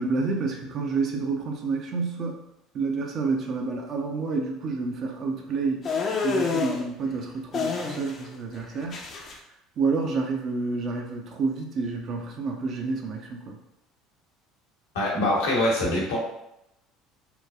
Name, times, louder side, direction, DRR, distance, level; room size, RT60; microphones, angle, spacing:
voice 1, 0.0-2.4 2.7-5.8 6.2-9.0 9.8-13.6, right 4 dB, 50° right, 2 dB, 0.6 m, -29 dB
sound 1, 5.8-6.8 7.5-8.3 8.5-9.3, left 5 dB, 45° left, 0.5 m, -28 dB
voice 2, 14.9-16.2, left 1 dB, 80° left, -4 dB, 0.9 m, -24 dB
3.0 x 2.3 x 2.3 m, 0.84 s
hypercardioid pair, 70°, 0 cm